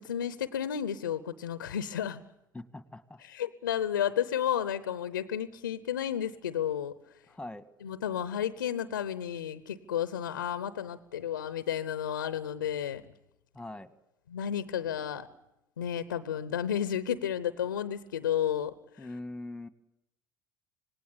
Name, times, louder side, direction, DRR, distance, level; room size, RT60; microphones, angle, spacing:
voice 1, 0.0-2.2 3.2-7.0 7.8-13.0 14.3-15.3 15.8-19.1, left 9 dB, 85° left, 14 dB, 0.8 m, -32 dB
voice 2, 2.5-3.2 7.3-7.7 13.5-13.9 19.0-19.7, left 2 dB, 10° left, 13 dB, 1.7 m, -42 dB
26.0 x 19.5 x 8.6 m, 0.87 s
hypercardioid pair, 65°, 10 cm